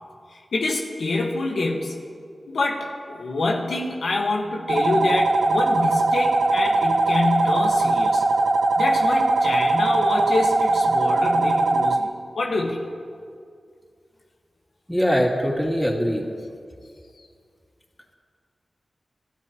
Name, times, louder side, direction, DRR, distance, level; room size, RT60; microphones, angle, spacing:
voice 1, 0.5-2.0 2.5-8.2 8.8-12.8, left 2 dB, 85° left, 0 dB, 1.6 m, -26 dB
sound 1, 4.7-12.0, right 2 dB, 75° right, 0.7 m, -20 dB
voice 2, 14.9-16.2, equal, ahead, -2 dB, 3.0 m, -22 dB
27.0 x 12.5 x 3.1 m, 2.2 s
cardioid pair, 45°, 0 cm